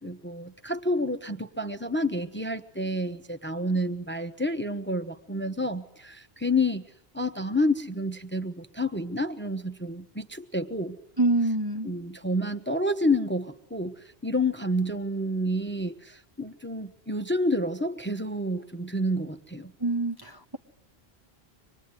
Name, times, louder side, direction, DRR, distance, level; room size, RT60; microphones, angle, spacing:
voice 1, 0.0-6.8 7.1-11.0 11.8-19.7, left 1 dB, 10° left, 8 dB, 0.9 m, -29 dB
voice 2, 11.2-11.9 19.8-20.6, right 2 dB, 25° right, 4 dB, 1.0 m, -26 dB
25.5 x 21.0 x 9.7 m, 0.82 s
omnidirectional pair, 1.0 m